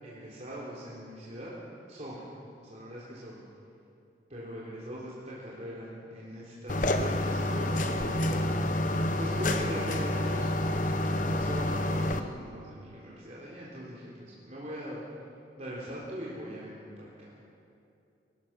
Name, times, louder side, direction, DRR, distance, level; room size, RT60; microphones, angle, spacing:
voice 1, 0.0-1.6 1.9-2.3 2.6-3.4 4.3-8.5 9.2-15.0 15.6-17.4, equal, 40° right, -7 dB, 3.7 m, -41 dB
sound 1, 6.7-12.2, left 1 dB, 45° left, 1.0 m, -28 dB
24.5 x 19.5 x 6.0 m, 2.6 s
head